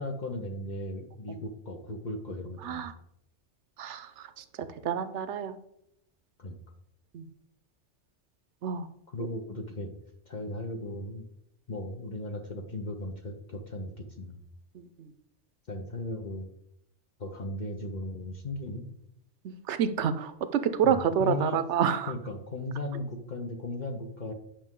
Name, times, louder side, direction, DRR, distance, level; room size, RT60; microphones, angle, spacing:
voice 1, 0.0-2.9 6.4-6.6 9.1-9.9 10.3-11.3 11.7-13.9 14.2-14.4 15.7-16.5 17.2-18.8 20.8-21.6 22.1-24.3, left 2 dB, 45° left, 3 dB, 0.8 m, -36 dB
voice 2, 2.6-2.9 3.8-5.6 7.1-7.3 8.6-8.9 9.2-9.3 14.7-15.1 19.4-22.1, right 8 dB, 75° right, 11 dB, 1.0 m, -29 dB
10.0 x 6.0 x 3.7 m, 0.79 s
omnidirectional pair, 1.2 m